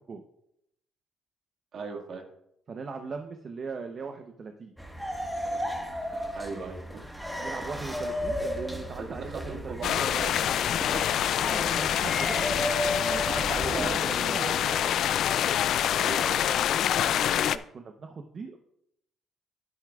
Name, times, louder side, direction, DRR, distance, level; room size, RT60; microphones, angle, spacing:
voice 1, 1.7-2.2 6.3-7.0 9.0-10.3 13.5-14.8 16.0-16.6, right 4 dB, 60° right, 2 dB, 1.8 m, -38 dB
voice 2, 2.7-4.7 7.4-10.6 10.9-12.5 13.0-15.2 17.0-18.6, right 5 dB, 45° right, 5 dB, 0.7 m, -39 dB
sound 1, 4.8-14.0, equal, 5° right, 1.4 m, -34 dB
sound 2, 9.8-17.6, left 10 dB, 75° left, 0.3 m, -26 dB
11.0 x 10.0 x 2.4 m, 0.77 s
cardioid pair, 90°, 0 cm